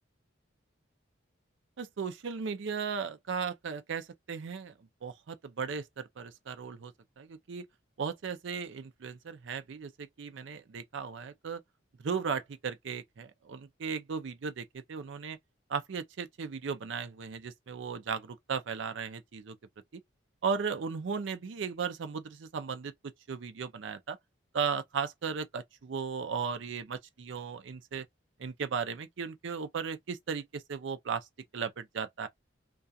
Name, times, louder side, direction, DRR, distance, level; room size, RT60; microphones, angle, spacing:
voice 1, 1.8-4.7 5.0-7.7 8.0-11.6 12.0-15.4 15.7-19.6 19.9-20.0 20.4-24.2 24.5-28.1 28.4-31.3 31.5-32.3, right 6 dB, 70° right, 0.4 m, -36 dB
2.3 x 2.3 x 2.6 m
head